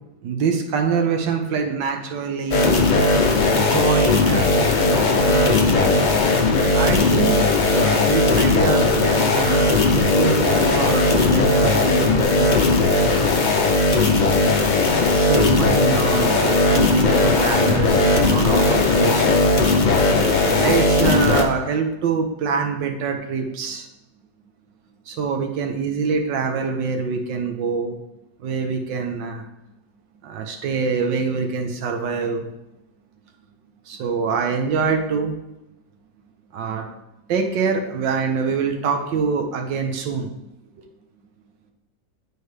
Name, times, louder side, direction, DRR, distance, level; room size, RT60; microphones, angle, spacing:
voice 1, 0.2-2.7 3.4-6.1 6.7-7.3 7.6-12.6 15.1-19.5 20.5-23.9 25.1-27.9 28.4-29.5 30.2-32.5 33.9-35.3 36.5-36.9 37.3-40.3 40.8-40.9, right 5 dB, 90° right, 3 dB, 1.6 m, -25 dB
sound 1, 2.5-21.4, left 3 dB, 50° left, 0.5 m, -18 dB
9.7 x 4.7 x 3.3 m, 0.91 s
omnidirectional pair, 1.9 m